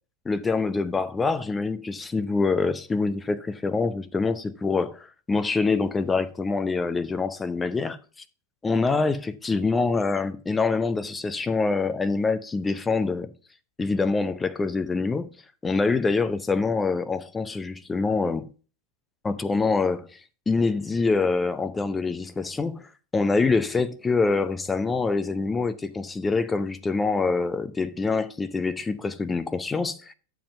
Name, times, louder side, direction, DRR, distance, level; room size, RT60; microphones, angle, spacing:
voice 1, 0.3-8.0 8.6-13.3 13.8-15.3 15.6-18.5 19.2-20.2 20.5-30.1, left 4 dB, 15° left, 0.6 m, -25 dB
10.0 x 7.0 x 2.5 m
figure-of-eight pair, 90°, 0 cm